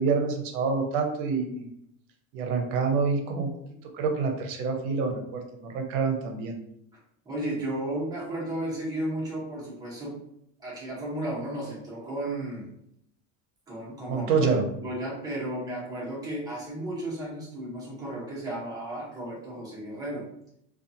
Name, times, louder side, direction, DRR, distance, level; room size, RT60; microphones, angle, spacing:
voice 1, 0.0-1.7 2.3-3.5 3.9-6.5 14.1-14.7, right 4 dB, 70° right, 3 dB, 0.7 m, -27 dB
voice 2, 7.3-10.2 10.6-12.7 13.7-14.5 14.8-20.2, right 1 dB, 10° right, -6 dB, 0.7 m, -34 dB
2.6 x 2.3 x 2.6 m, 0.76 s
cardioid pair, 170°, 39 cm